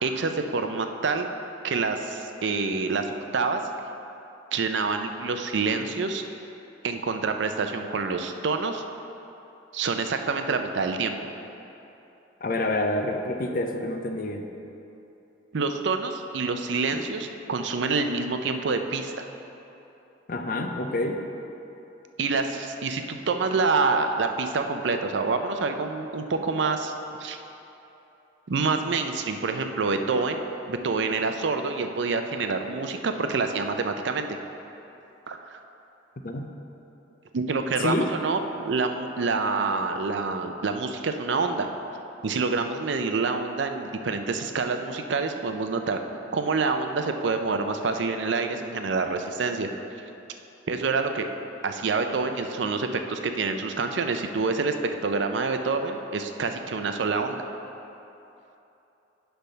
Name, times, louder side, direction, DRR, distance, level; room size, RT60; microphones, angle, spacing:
voice 1, 0.0-1.3 1.6-3.0 3.3-3.6 4.5-6.2 6.8-8.8 9.7-11.2 15.5-19.2 22.2-26.9 27.2-27.4 28.5-30.4 30.7-34.3 35.3-35.6 37.3-41.7 42.2-46.0 46.3-49.7 50.7-51.3 51.6-54.7 55.0-57.4, right 4 dB, 80° right, 6 dB, 0.5 m, -27 dB
voice 2, 12.4-14.5 20.3-21.2 36.2-36.5 37.8-38.1, left 2 dB, 50° left, 4 dB, 0.5 m, -27 dB
10.0 x 3.5 x 5.6 m, 2.9 s
head